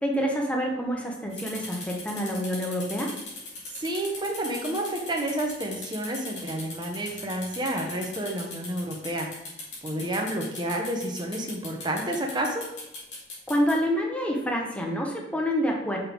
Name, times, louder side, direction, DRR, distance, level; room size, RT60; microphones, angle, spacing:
voice 1, 0.0-3.1 13.5-16.0, equal, 5° left, 0 dB, 1.0 m, -27 dB
sound 1, 1.3-13.7, left 2 dB, 80° left, 2.5 m, -39 dB
voice 2, 3.8-9.3 9.8-12.6, right 1 dB, 25° right, 1 dB, 1.0 m, -30 dB
5.9 x 5.5 x 3.6 m, 0.92 s
head